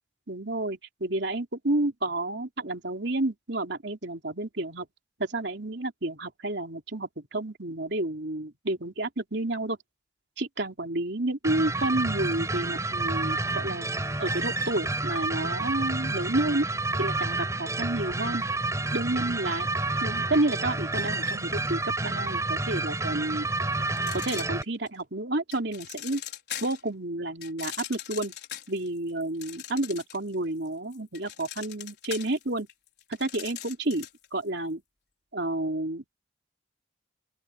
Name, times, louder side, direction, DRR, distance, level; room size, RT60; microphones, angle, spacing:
voice 1, 0.3-4.9 5.2-9.8 10.4-13.9 14.2-16.7 17.0-18.4 18.9-19.7 20.0-23.5 24.1-26.2 26.6-28.3 28.7-32.7 33.1-34.8 35.3-36.2, right 2 dB, 75° right, 3.2 m, -30 dB
sound 1, 11.4-24.6, right 2 dB, 15° right, 5.0 m, -29 dB
sound 2, 24.0-25.0 25.5-26.9 27.4-30.3 30.7-34.3, left 11 dB, 65° left, 4.9 m, -40 dB
open air
head